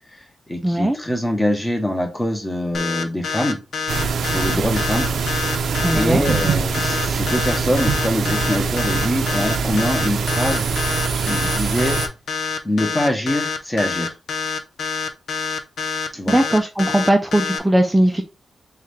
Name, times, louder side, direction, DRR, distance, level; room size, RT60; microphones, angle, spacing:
voice 1, 0.1-3.6 4.3-5.1 5.9-12.0 12.6-14.1 16.1-16.4, left 1 dB, 15° left, 3 dB, 1.1 m, -24 dB
voice 2, 0.6-1.0 5.8-6.2 16.3-18.2, right 1 dB, 10° right, 3 dB, 0.5 m, -18 dB
sound 1, 2.7-17.6, left 5 dB, 75° left, 0.5 m, -26 dB
sound 2, 3.9-12.1, right 5 dB, 85° right, 0.6 m, -23 dB
3.7 x 3.2 x 3.3 m, 0.28 s
cardioid pair, 100°, 0 cm